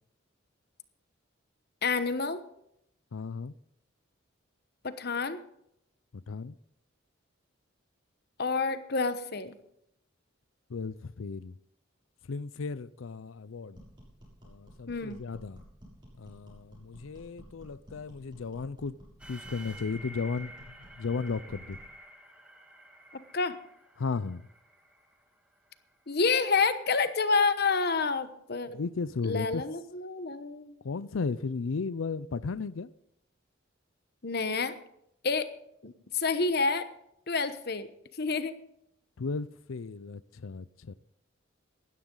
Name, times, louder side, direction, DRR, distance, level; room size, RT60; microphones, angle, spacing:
voice 1, 1.8-2.4 4.8-5.4 8.4-9.6 14.9-15.2 23.1-23.6 26.1-28.7 29.2-30.8 34.2-34.7 35.2-35.5 35.8-36.9 37.3-37.9 38.2-38.5, left 4 dB, 50° left, 1.1 m, -28 dB
voice 2, 3.1-3.5 6.3-6.6 10.7-11.5 12.3-13.8 14.4-15.6 16.2-19.0 19.3-21.8 24.0-24.5 28.7-29.6 30.8-32.9 39.2-40.9, left 4 dB, 80° left, 0.5 m, -35 dB
sound 1, 13.7-21.9, equal, 20° right, 6.5 m, -53 dB
sound 2, 19.2-26.1, right 1 dB, 5° right, 2.2 m, -50 dB
18.5 x 13.5 x 3.9 m
head